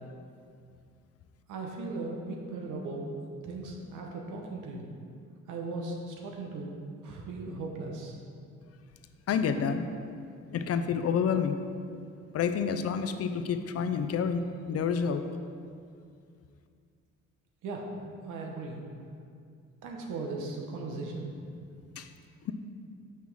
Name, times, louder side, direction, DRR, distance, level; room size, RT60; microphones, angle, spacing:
voice 1, 1.5-3.1 3.4-4.9 5.5-6.8 7.0-8.2 17.6-17.8 18.2-18.8 19.8-21.3, right 3 dB, 90° right, 0 dB, 1.1 m, -37 dB
voice 2, 9.3-9.9 10.5-11.6 12.3-15.2 22.0-22.1 22.4-22.5, left 6 dB, 55° left, 9 dB, 0.5 m, -29 dB
5.9 x 5.6 x 4.7 m, 2.3 s
cardioid pair, 90°, 30 cm